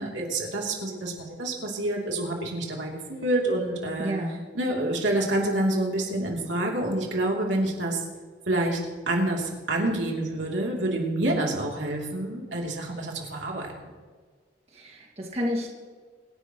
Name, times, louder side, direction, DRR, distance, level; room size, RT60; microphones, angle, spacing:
voice 1, 0.0-4.1 4.5-8.0 8.5-8.8 9.1-13.9, right 1 dB, 90° right, -1 dB, 3.0 m, -27 dB
voice 2, 4.0-4.4 14.7-15.7, equal, 35° right, -1 dB, 2.0 m, -30 dB
25.5 x 11.0 x 3.1 m, 1.5 s
head